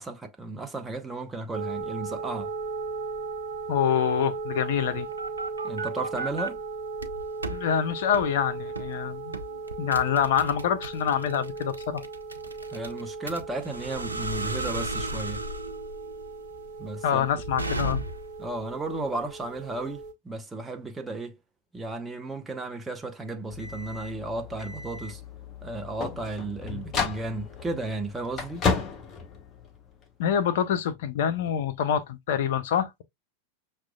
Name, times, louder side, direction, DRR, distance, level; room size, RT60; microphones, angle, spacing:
voice 1, 0.0-2.5 5.6-6.6 12.7-15.4 16.8-17.3 18.4-21.4 21.7-25.2 25.6-28.7, right 2 dB, 10° right, 0.7 m, -34 dB
sound 1, 1.5-20.1, right 4 dB, 45° right, 0.8 m, -37 dB
voice 2, 3.7-5.1 7.5-9.3 9.8-12.0 17.0-18.0 26.7-26.8 30.2-33.0, left 8 dB, 55° left, 0.5 m, -26 dB
sound 2, 4.7-6.5 7.0-7.6 8.1-8.3 8.8-9.0 9.3-18.4, right 2 dB, 80° right, 0.5 m, -34 dB
sound 3, 23.5-30.1, left 5 dB, 25° left, 0.9 m, -33 dB
5.9 x 2.3 x 2.3 m
figure-of-eight pair, 90°, 0 cm